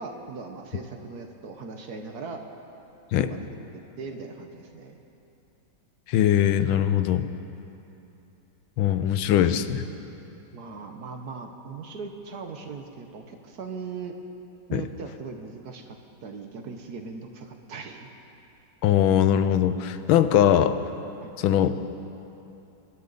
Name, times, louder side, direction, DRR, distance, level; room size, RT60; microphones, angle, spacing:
voice 1, 0.0-2.4 3.1-3.4 4.0-5.0 10.5-14.1 14.7-18.1 21.2-21.3, right 4 dB, 55° right, 4 dB, 1.3 m, -39 dB
voice 2, 6.1-7.3 8.8-9.9 14.7-14.8 18.8-20.8 21.4-21.8, left 10 dB, 85° left, 11 dB, 1.4 m, -21 dB
24.0 x 12.5 x 4.0 m, 2.9 s
omnidirectional pair, 2.2 m